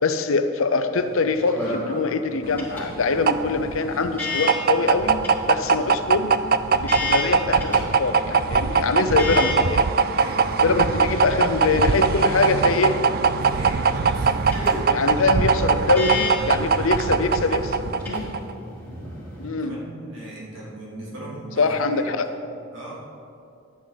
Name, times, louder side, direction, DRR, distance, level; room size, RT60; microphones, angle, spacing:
voice 1, 0.0-5.2 5.5-6.3 6.7-9.8 10.6-13.0 14.7-18.3 19.4-19.8 21.6-22.3, left 4 dB, 75° left, 9 dB, 0.7 m, -23 dB
sound 1, 0.9-19.5, left 2 dB, 10° left, 2.6 m, -34 dB
sound 2, 2.5-18.5, right 5 dB, 45° right, 0.3 m, -21 dB
voice 2, 10.1-11.1 13.4-15.9 18.8-19.2 19.5-22.1 22.7-23.0, right 1 dB, 65° right, -6 dB, 3.0 m, -38 dB
12.0 x 9.5 x 4.1 m, 2.5 s
head